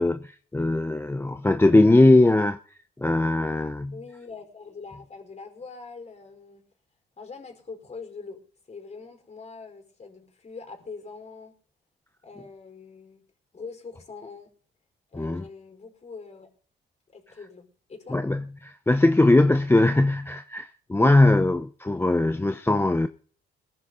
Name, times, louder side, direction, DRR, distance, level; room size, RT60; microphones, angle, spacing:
voice 1, 0.0-2.6 3.0-3.9 15.2-15.4 18.1-23.1, left 2 dB, 10° left, 0.8 m, -20 dB
voice 2, 3.9-6.6 7.2-8.4 8.7-11.6 12.2-13.2 13.5-14.5 15.1-16.5 17.1-18.2, left 4 dB, 35° left, 5.1 m, -43 dB
21.0 x 11.0 x 4.0 m
cardioid pair, 90°, 20 cm